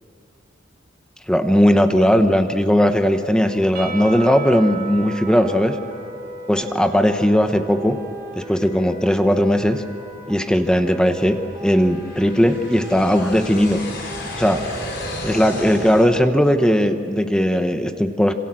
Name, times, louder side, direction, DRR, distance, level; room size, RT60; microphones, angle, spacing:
voice 1, 1.3-5.8 6.5-8.0 8.4-9.8 10.3-13.8 14.4-14.6 15.2-18.3, equal, 5° left, 7 dB, 1.0 m, -18 dB
sound 1, 3.4-15.9, right 1 dB, 15° right, 2.8 m, -38 dB
Percussion / Church bell, 3.7-7.7, right 6 dB, 45° right, 3.2 m, -37 dB
sound 2, 9.0-16.0, left 1 dB, 60° left, 4.6 m, -34 dB
26.5 x 26.0 x 7.7 m, 2.5 s
head